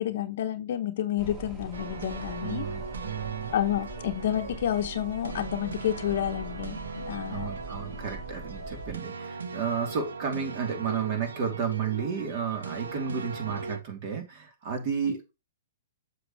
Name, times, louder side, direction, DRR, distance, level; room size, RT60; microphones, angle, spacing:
voice 1, 0.0-2.6 3.5-7.5, left 11 dB, 60° left, 0.8 m, -30 dB
sound 1, 1.2-8.9, right 1 dB, 25° right, 4.4 m, -43 dB
sound 2, 1.7-13.8, right 4 dB, 80° right, 1.1 m, -39 dB
voice 2, 2.4-3.5 7.3-15.3, right 7 dB, 45° right, 2.8 m, -32 dB
7.9 x 5.9 x 3.0 m
hypercardioid pair, 125°, 0 cm